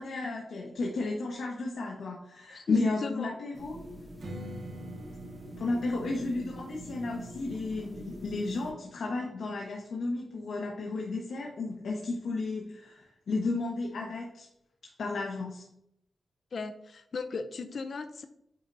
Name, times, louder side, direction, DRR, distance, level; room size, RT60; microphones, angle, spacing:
voice 1, 0.0-3.7 5.6-14.5 15.0-15.6, left 3 dB, 80° left, -2 dB, 1.1 m, -33 dB
voice 2, 2.5-3.3 16.5-18.3, left 4 dB, 50° left, 8 dB, 0.4 m, -36 dB
sound 1, 3.5-8.7, right 1 dB, 10° right, 0.9 m, -44 dB
Strum, 4.2-9.4, equal, 90° right, 1.5 m, -48 dB
8.7 x 4.3 x 2.6 m, 0.77 s
wide cardioid pair, 150°, 0 cm